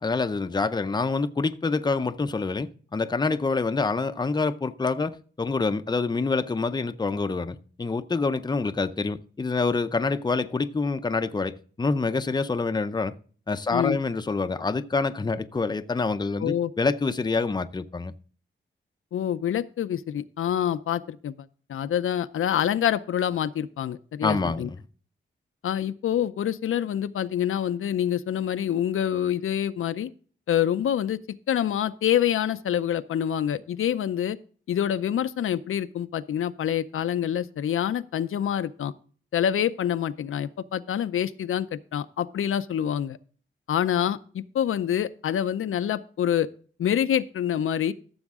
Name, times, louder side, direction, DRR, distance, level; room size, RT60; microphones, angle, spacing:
voice 1, 0.0-13.1 13.5-18.1 24.2-24.8, left 4 dB, 20° left, 0.6 m, -26 dB
voice 2, 16.4-16.7 19.1-21.3 21.7-24.7 25.6-30.1 30.5-31.2 31.5-34.4 34.7-38.9 39.3-43.2 43.7-46.5 46.8-47.9, left 10 dB, 90° left, 0.5 m, -26 dB
14.0 x 7.1 x 3.6 m
wide cardioid pair, 110°, 21 cm